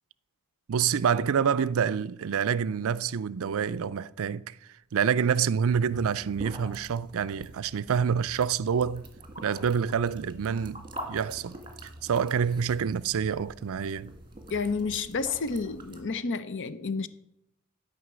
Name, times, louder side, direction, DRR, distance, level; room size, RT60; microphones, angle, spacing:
voice 1, 0.7-4.6 4.9-9.0 9.4-11.6 12.0-14.1, right 7 dB, 65° right, 0.4 m, -27 dB
sound 1, 5.7-16.0, right 1 dB, 20° right, 2.0 m, -45 dB
voice 2, 14.5-17.1, left 4 dB, 55° left, 0.7 m, -30 dB
12.5 x 5.8 x 8.8 m
head